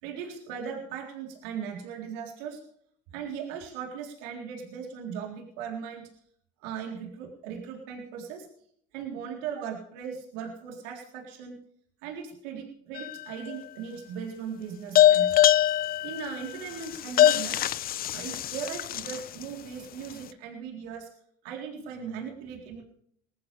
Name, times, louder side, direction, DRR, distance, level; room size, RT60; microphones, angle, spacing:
voice 1, 0.0-2.6 3.1-6.1 6.6-8.5 8.9-11.6 12.0-15.3 16.0-17.6 18.1-21.1 21.4-22.8, right 7 dB, 85° right, 1 dB, 3.9 m, -38 dB
sound 1, 12.9-13.6 14.9-19.4, left 12 dB, 45° left, 0.6 m, -23 dB
20.0 x 14.5 x 3.5 m, 0.66 s
supercardioid pair, 95°, 20 cm